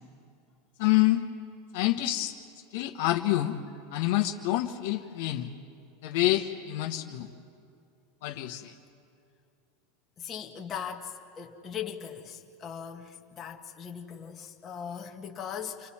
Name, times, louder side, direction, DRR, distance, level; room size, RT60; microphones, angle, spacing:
voice 1, 0.8-1.2 1.7-2.3 2.7-3.6 3.9-5.5 6.0-7.3 8.2-8.7, left 15 dB, 65° left, 4 dB, 1.2 m, -27 dB
voice 2, 10.2-15.9, left 8 dB, 25° left, 1 dB, 1.3 m, -39 dB
29.5 x 24.5 x 4.3 m, 2.4 s
supercardioid pair, 155°, 0 cm